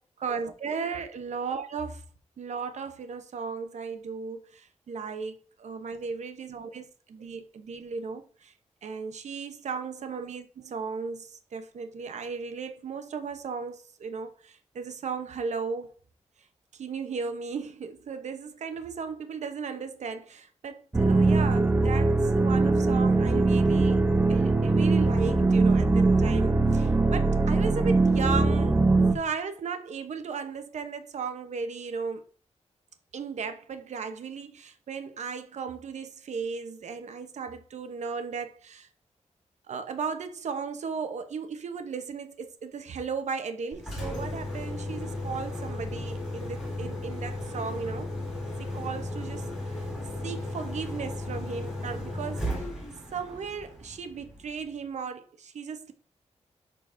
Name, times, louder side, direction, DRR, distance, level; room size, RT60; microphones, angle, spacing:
voice 1, 0.2-2.0 2.4-8.5 8.8-15.9 16.7-24.0 24.3-28.8 29.1-32.2 33.1-38.9 39.7-48.1 48.6-49.5 50.2-52.7 53.1-55.9, right 5 dB, 75° right, 0.8 m, -36 dB
sound 1, 20.9-29.1, right 3 dB, 15° right, 0.5 m, -22 dB
Engine, 43.7-54.7, left 1 dB, ahead, 3.5 m, -35 dB
11.5 x 3.9 x 2.6 m
wide cardioid pair, 145°, 12 cm